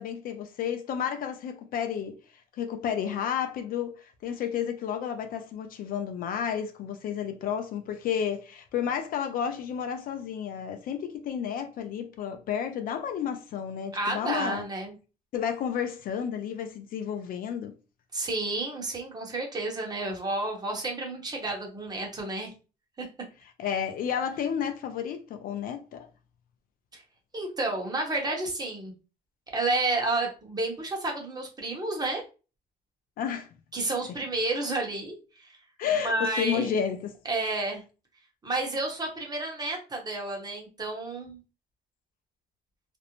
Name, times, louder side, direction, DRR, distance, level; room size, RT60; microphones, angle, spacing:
voice 1, 0.0-2.2 2.6-14.6 15.3-17.7 23.6-26.1 33.2-33.5 35.8-37.1, left 8 dB, 55° left, 0.4 m, -31 dB
voice 2, 13.9-14.9 18.1-22.5 23.0-23.1 26.9-27.0 27.3-28.9 29.5-32.2 33.7-35.1 35.4-35.6 36.0-36.8 37.2-37.8 38.4-41.4, right 2 dB, 25° right, 0.9 m, -30 dB
2.5 x 2.0 x 2.9 m
cardioid pair, 110°, 17 cm